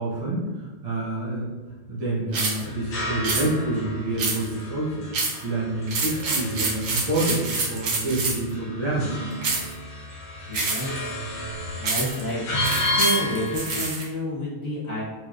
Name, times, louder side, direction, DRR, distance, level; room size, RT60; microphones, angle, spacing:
voice 1, 0.0-1.5 1.9-9.1, right 2 dB, 60° right, -9 dB, 0.4 m, -27 dB
sound 1, 2.3-2.6 3.2-3.5 4.2-4.6 5.1-5.4 5.9-8.5 9.4-9.7 10.5-11.0 11.8-12.2 12.6-14.0, right 4 dB, 85° right, 1.8 m, -27 dB
sound 2, 2.6-13.9, left 1 dB, 70° left, 0.7 m, -32 dB
voice 2, 10.5-11.2 11.8-12.5 12.9-15.0, equal, 45° left, -9 dB, 1.4 m, -29 dB
4.8 x 3.0 x 2.4 m, 1.3 s
omnidirectional pair, 2.4 m